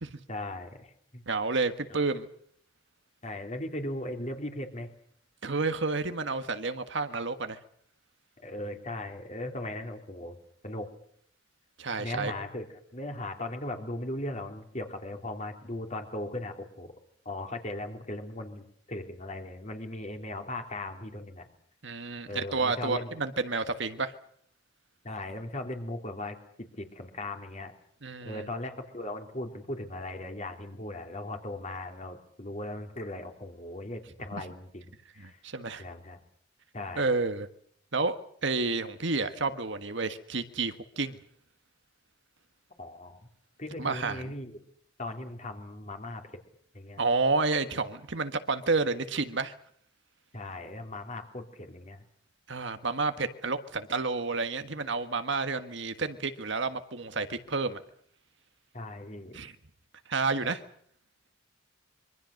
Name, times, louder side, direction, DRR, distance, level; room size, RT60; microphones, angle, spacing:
voice 1, 0.3-1.2 1.9-2.0 3.2-4.9 8.4-10.4 10.6-10.9 12.0-16.9 17.2-21.5 22.3-23.1 25.0-27.7 28.2-34.8 35.1-35.4 35.8-36.2 36.7-37.1 42.8-43.2 43.6-44.5 45.0-46.4 46.7-47.0 50.3-52.0 58.7-59.5, left 1 dB, 35° left, 4 dB, 3.3 m, -38 dB
voice 2, 1.3-2.2 5.4-7.6 11.8-12.3 21.8-24.1 28.0-28.5 34.3-34.4 35.2-35.8 37.0-37.5 37.9-38.2 38.4-41.2 43.8-44.2 47.0-49.5 52.5-57.8 59.3-59.5 60.1-60.6, right 3 dB, 60° right, 9 dB, 1.5 m, -30 dB
25.5 x 24.0 x 6.6 m, 0.63 s
head